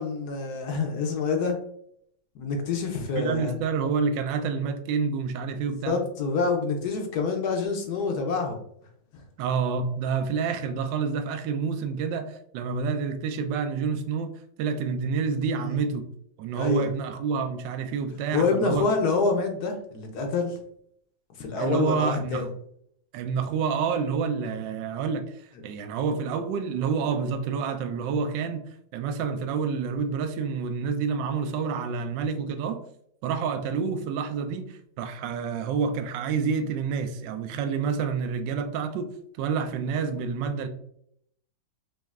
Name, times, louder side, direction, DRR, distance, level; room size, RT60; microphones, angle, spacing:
voice 1, 0.0-1.6 2.3-3.5 5.9-8.6 15.6-15.9 16.5-16.9 18.3-20.6 21.4-22.5, left 4 dB, 65° left, 3 dB, 1.1 m, -27 dB
voice 2, 3.1-6.0 9.4-14.3 14.6-16.0 16.4-18.9 21.6-22.5 23.1-28.6 28.9-32.8 33.2-39.1 39.4-40.7, right 5 dB, 75° right, 8 dB, 1.2 m, -28 dB
5.1 x 3.2 x 2.4 m, 0.68 s
omnidirectional pair, 2.1 m